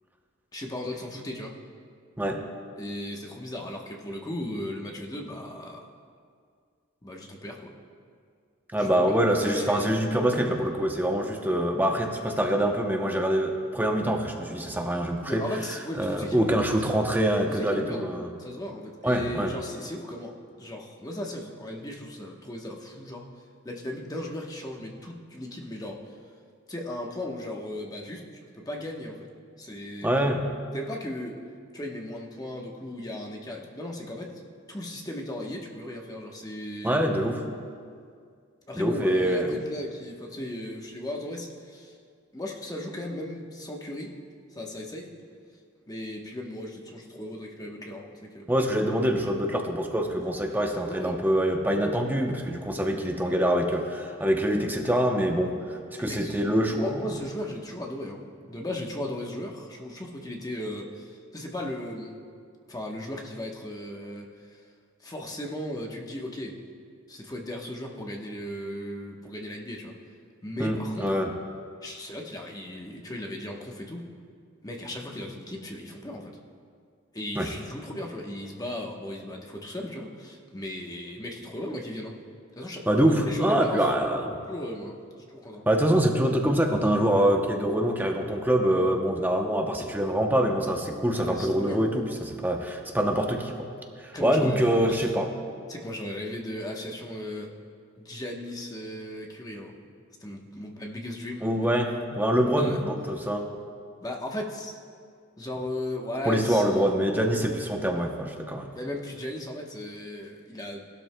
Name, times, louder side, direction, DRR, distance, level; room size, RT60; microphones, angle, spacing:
voice 1, 0.5-1.6 2.8-5.8 7.0-7.7 8.8-9.2 9.4-9.9 15.3-16.7 17.5-18.1 18.4-23.3 23.6-26.0 26.7-28.3 28.5-29.3 29.6-30.1 30.7-31.4 31.7-34.4 34.7-37.0 38.7-42.0 42.3-44.2 44.5-45.1 45.9-48.5 50.8-51.2 55.9-56.4 56.7-62.2 62.7-64.6 65.0-66.6 67.1-69.9 70.4-71.2 71.8-74.1 74.6-76.4 77.1-82.2 82.6-83.9 84.5-85.0 85.3-85.7 91.1-91.8 94.1-95.1 95.7-97.5 98.0-99.8 100.2-101.8 102.6-102.8 104.0-104.8 105.4-106.9 108.7-110.9, left 1 dB, 15° left, 0 dB, 1.0 m, -36 dB
voice 2, 8.7-15.4 16.0-18.3 19.0-19.5 30.0-30.5 36.8-37.4 38.8-39.6 48.5-57.1 70.6-71.3 77.4-77.5 82.9-84.4 85.7-93.7 94.0-95.3 101.4-103.5 106.3-108.8, right 1 dB, 10° right, 2 dB, 0.7 m, -25 dB
17.5 x 12.0 x 2.2 m, 2.1 s
head